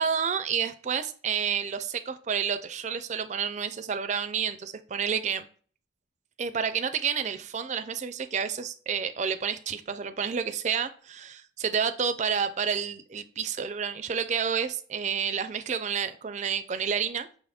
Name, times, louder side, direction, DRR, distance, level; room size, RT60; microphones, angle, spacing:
voice 1, 0.0-5.5 6.4-17.3, right 7 dB, 35° right, 11 dB, 0.3 m, -30 dB
5.6 x 3.5 x 2.3 m, 0.44 s
head